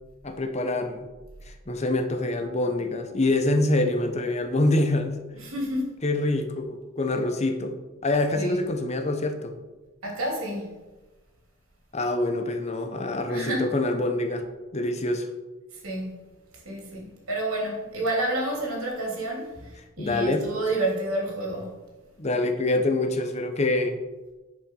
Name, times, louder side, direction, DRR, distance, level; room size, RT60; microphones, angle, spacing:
voice 1, 0.2-1.1 1.5-5.2 6.0-7.8 8.0-9.5 11.9-14.4 14.7-15.3 20.0-20.5 22.2-24.0, left 2 dB, 30° left, 6 dB, 0.9 m, -25 dB
voice 2, 5.3-5.9 8.3-8.6 10.0-10.7 13.3-13.7 15.7-16.2 16.5-21.8, right 1 dB, 90° right, -1 dB, 3.0 m, -30 dB
10.5 x 5.4 x 5.4 m, 1.2 s
head